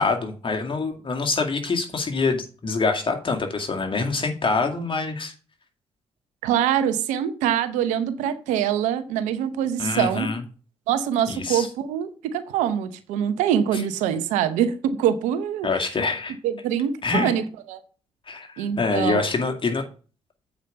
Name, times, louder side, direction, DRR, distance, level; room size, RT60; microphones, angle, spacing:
voice 1, 0.0-5.3 9.8-10.4 11.3-11.7 15.6-16.3 17.0-17.3 18.3-19.8, left 4 dB, 45° left, 2.2 m, -25 dB
voice 2, 6.4-10.3 10.9-15.7 16.4-17.8 18.6-19.2, right 9 dB, 85° right, 0.8 m, -24 dB
8.0 x 5.0 x 6.8 m
hypercardioid pair, 45°, 12 cm